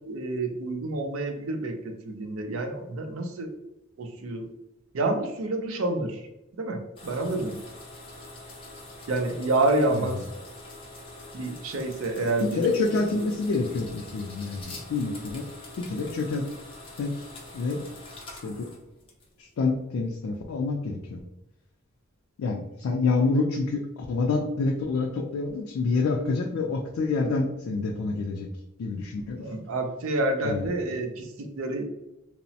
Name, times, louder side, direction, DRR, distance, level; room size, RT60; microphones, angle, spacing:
voice 1, 0.0-3.5 4.0-4.5 4.9-6.3 6.6-7.6 9.1-10.2 11.3-12.7 13.1-13.2 29.4-31.8, right 2 dB, 75° right, 5 dB, 0.5 m, -28 dB
sound 1, 7.0-19.5, left 2 dB, 25° left, 0.5 m, -44 dB
voice 2, 12.5-15.5 15.8-16.5 17.0-17.8 18.4-18.7 19.4-21.2 22.4-28.5 28.8-29.5 30.4-30.7, left 3 dB, 85° left, 0 dB, 0.4 m, -27 dB
2.9 x 2.0 x 2.7 m, 0.88 s
head